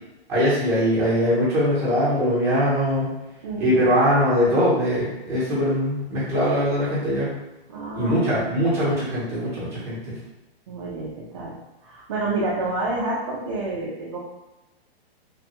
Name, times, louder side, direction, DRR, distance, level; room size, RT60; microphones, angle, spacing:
voice 1, 0.3-3.1 3.6-7.3 7.9-10.2, equal, 10° right, -10 dB, 0.8 m, -21 dB
voice 2, 3.4-3.8 7.7-8.2 10.7-11.5 11.8-14.2, right 2 dB, 30° right, -7 dB, 0.4 m, -28 dB
3.2 x 2.2 x 2.9 m, 1.0 s
hypercardioid pair, 175°, 31 cm